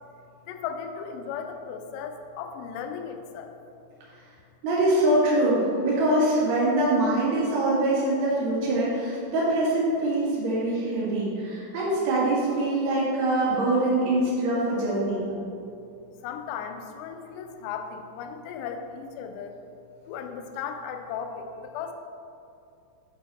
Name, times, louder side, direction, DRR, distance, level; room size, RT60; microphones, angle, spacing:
voice 1, 0.5-3.5 15.4-15.5 16.2-19.6 20.1-21.9, left 7 dB, 85° left, 6 dB, 3.2 m, -36 dB
voice 2, 4.6-15.2, right 1 dB, 85° right, -7 dB, 1.5 m, -24 dB
9.2 x 5.0 x 4.1 m, 2.5 s
omnidirectional pair, 5.9 m